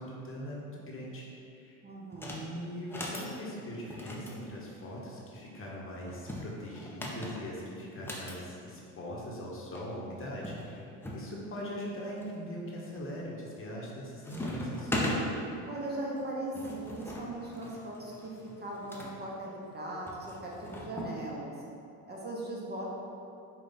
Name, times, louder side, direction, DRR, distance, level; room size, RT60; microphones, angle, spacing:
voice 1, 0.0-1.8 2.3-10.8 11.1-14.9, equal, 30° left, -4 dB, 1.0 m, -41 dB
voice 2, 1.8-2.4 15.7-21.5 22.1-22.9, right 1 dB, 25° right, -4 dB, 0.8 m, -39 dB
sound 1, 2.1-2.5 2.8-3.3 3.9-5.3 6.1-8.4 9.5-9.6 9.7-9.9 10.4-11.2 11.8-12.3 12.8-13.2 13.5-14.0 14.2-15.2 16.2-19.1 20.1-21.1, left 1 dB, 5° left, 0.6 m, -39 dB
5.1 x 2.4 x 4.0 m, 2.7 s
hypercardioid pair, 85°, 40 cm